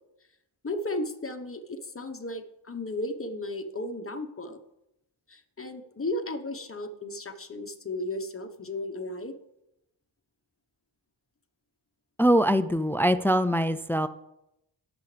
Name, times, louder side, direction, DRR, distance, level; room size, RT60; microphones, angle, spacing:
voice 1, 0.6-4.6 5.3-9.4 13.1-13.2, left 1 dB, 30° left, 7 dB, 1.2 m, -35 dB
voice 2, 12.2-14.1, equal, 5° left, 13 dB, 0.4 m, -23 dB
18.0 x 7.1 x 3.4 m, 0.85 s
cardioid pair, 80°, 45 cm